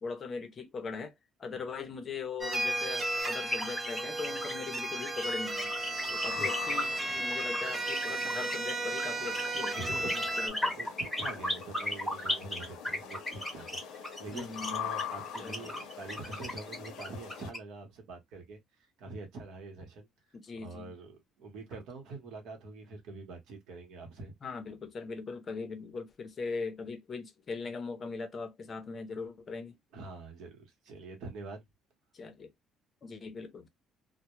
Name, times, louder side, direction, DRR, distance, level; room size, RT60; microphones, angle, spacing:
voice 1, 0.0-1.1 1.4-5.7 6.1-10.9 14.3-14.8 15.4-15.8 20.3-20.9 24.4-29.8 32.1-32.5 33.0-33.7, left 4 dB, 30° left, 0.5 m, -40 dB
sound 1, 2.4-10.5, right 2 dB, 20° right, 0.5 m, -34 dB
sound 2, 3.2-17.6, left 1 dB, 5° left, 0.8 m, -36 dB
sound 3, 5.7-17.5, left 9 dB, 75° left, 0.6 m, -44 dB
voice 2, 6.1-6.8 9.7-10.3 10.7-18.6 19.0-20.1 20.6-24.3 29.9-31.6, right 3 dB, 70° right, 0.9 m, -45 dB
2.2 x 2.0 x 2.9 m
cardioid pair, 150°, 0 cm